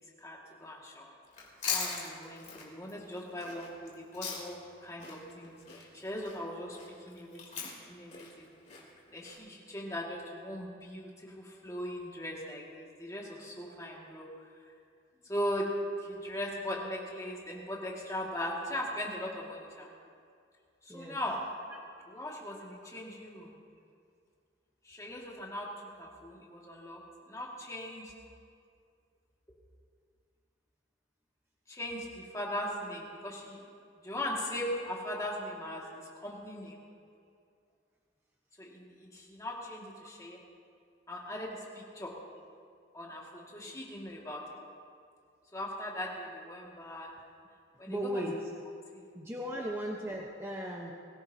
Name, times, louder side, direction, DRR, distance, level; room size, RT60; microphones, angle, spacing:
voice 1, 0.2-1.1 1.7-6.8 7.1-7.4 7.9-8.5 9.1-14.3 15.3-15.7 16.0-19.9 20.8-21.4 22.1-23.5 24.8-25.7 26.0-27.0 27.3-28.1 31.7-33.6 34.0-35.8 36.2-36.8 38.6-40.4 41.1-42.1 42.9-44.4 45.5-47.1 47.8-48.2 48.9-49.0, left 1 dB, 15° left, -3 dB, 2.0 m, -39 dB
Chewing mastication, 1.3-4.7 5.0-9.4, left 5 dB, 35° left, 3.2 m, -40 dB
voice 2, 47.9-48.4 49.1-50.9, equal, 10° right, -2 dB, 1.0 m, -36 dB
23.5 x 16.0 x 2.8 m, 2.3 s
head